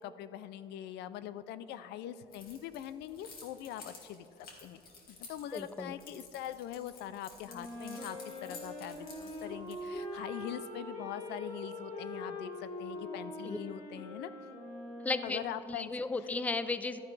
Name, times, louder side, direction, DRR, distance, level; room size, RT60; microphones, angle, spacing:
voice 1, 0.0-4.8 5.1-14.3 15.2-15.9, left 11 dB, 80° left, 14 dB, 0.4 m, -43 dB
Keys jangling, 2.3-10.0, left 4 dB, 60° left, 2.1 m, -52 dB
voice 2, 5.5-5.9 13.4-13.6 15.0-15.4 15.7-17.0, left 3 dB, 10° left, 12 dB, 0.4 m, -34 dB
Wind instrument woodwind instrument, 7.4-15.7, left 1 dB, 45° left, 2.4 m, -43 dB
12.0 x 9.3 x 3.3 m, 2.8 s
cardioid pair, 110°, 17 cm